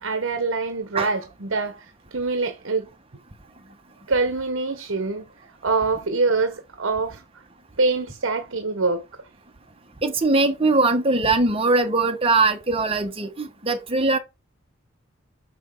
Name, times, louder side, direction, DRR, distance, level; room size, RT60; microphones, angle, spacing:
voice 1, 0.0-2.9 4.1-5.3 5.6-7.2 7.8-9.0, right 3 dB, 65° right, 1.1 m, -24 dB
voice 2, 10.0-14.2, right 3 dB, 25° right, 1.2 m, -21 dB
6.8 x 6.2 x 4.7 m
head